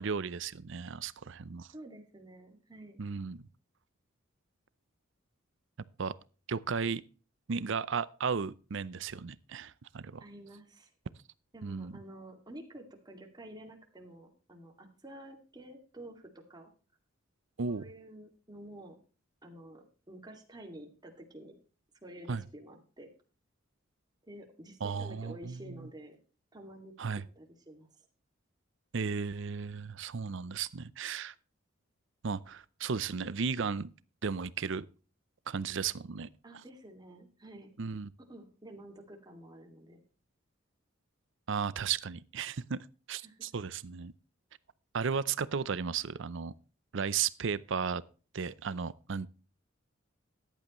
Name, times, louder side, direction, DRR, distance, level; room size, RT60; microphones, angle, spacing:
voice 1, 0.0-1.7 3.0-3.5 6.0-6.1 6.5-7.0 7.5-10.2 11.6-11.9 17.6-17.8 22.3-22.4 24.8-25.9 27.0-27.2 28.9-31.3 32.2-33.9 34.2-34.9 35.5-36.3 37.8-38.1 41.5-44.1 44.9-46.5 46.9-48.0 48.3-49.3, right 6 dB, 65° right, 0.6 m, -35 dB
voice 2, 1.7-3.0 10.2-10.9 11.5-16.7 17.7-19.0 19.4-21.5 22.0-23.1 24.3-26.2 26.5-27.9 36.4-37.7 38.3-40.0 43.2-43.5, right 1 dB, 20° right, 2.2 m, -50 dB
14.0 x 10.5 x 3.1 m
head